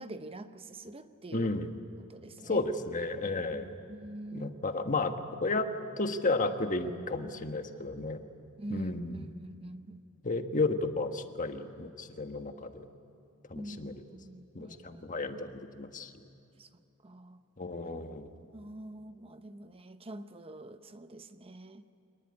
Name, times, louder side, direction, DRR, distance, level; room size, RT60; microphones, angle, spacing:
voice 1, 0.0-1.5 2.1-2.6 3.5-4.6 8.6-10.0 13.5-15.3 16.6-16.7 17.0-17.4 18.5-21.8, right 1 dB, 25° right, 9 dB, 0.8 m, -45 dB
voice 2, 1.3-1.7 2.5-3.8 4.3-5.1 5.4-5.7 6.0-8.2 8.7-9.3 10.2-12.9 13.5-13.9 14.5-16.1 17.6-18.3, left 3 dB, 40° left, 7 dB, 1.4 m, -33 dB
26.5 x 20.0 x 9.7 m, 2.7 s
head